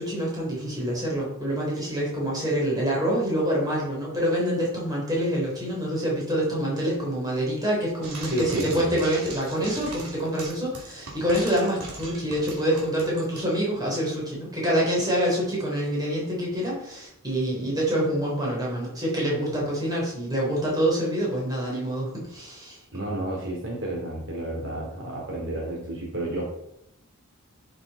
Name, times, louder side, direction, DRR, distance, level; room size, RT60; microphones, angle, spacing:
voice 1, 0.0-22.8, equal, 15° right, -4 dB, 3.7 m, -26 dB
Frying (food), 8.0-13.5, right 3 dB, 85° right, 2.8 m, -39 dB
voice 2, 8.3-8.9 22.9-26.4, right 1 dB, 55° right, -2 dB, 2.8 m, -31 dB
11.0 x 6.8 x 4.2 m, 0.78 s
head